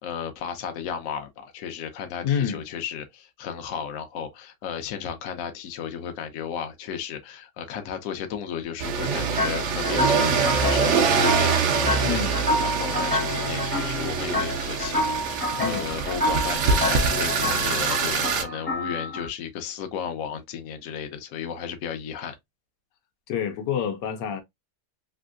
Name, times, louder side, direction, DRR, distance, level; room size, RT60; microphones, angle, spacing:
voice 1, 0.0-22.3, left 8 dB, 65° left, 0.9 m, -34 dB
voice 2, 2.2-2.6 12.0-12.5 15.6-15.9 23.3-24.4, left 8 dB, 85° left, 1.3 m, -28 dB
sound 1, 8.8-18.4, right 5 dB, 65° right, 0.7 m, -24 dB
sound 2, 9.4-19.3, left 1 dB, 10° left, 0.6 m, -29 dB
3.3 x 2.6 x 2.4 m
omnidirectional pair, 1.8 m